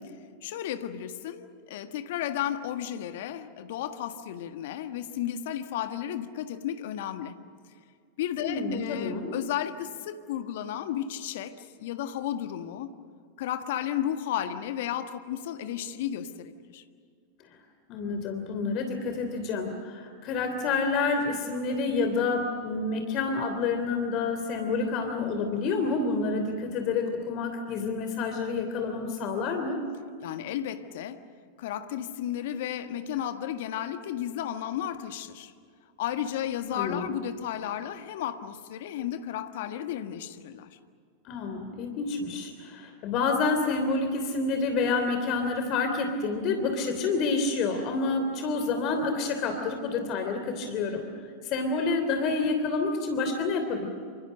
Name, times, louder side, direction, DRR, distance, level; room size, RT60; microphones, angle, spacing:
voice 1, 0.4-7.4 8.2-12.9 13.4-16.8 30.2-31.2 31.6-35.5 36.0-40.8, left 10 dB, 60° left, 1.5 m, -33 dB
voice 2, 8.4-9.3 17.9-29.8 36.7-37.1 41.2-51.1 51.4-53.9, left 4 dB, 45° left, 3.1 m, -28 dB
28.5 x 26.5 x 6.5 m
figure-of-eight pair, 90°, 0 cm